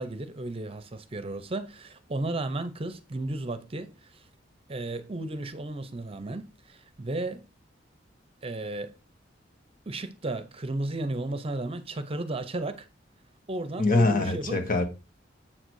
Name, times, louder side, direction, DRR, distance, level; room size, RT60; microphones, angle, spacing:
voice 1, 0.0-4.2 4.7-7.5 8.4-8.9 9.9-12.9 13.5-14.7, right 2 dB, 30° right, 0.7 m, -34 dB
voice 2, 13.8-14.8, left 2 dB, 50° left, 1.5 m, -23 dB
7.6 x 3.8 x 6.4 m
head